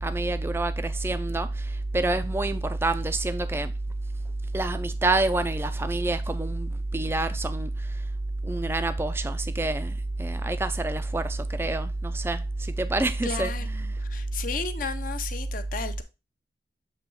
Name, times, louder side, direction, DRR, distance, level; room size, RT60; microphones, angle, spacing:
voice 1, 0.0-3.7 4.5-7.7 8.4-13.9, right 2 dB, 15° right, 0.4 m, -27 dB
voice 2, 13.2-13.7 14.0-16.0, left 5 dB, 45° left, 0.7 m, -33 dB
7.4 x 3.0 x 4.7 m
head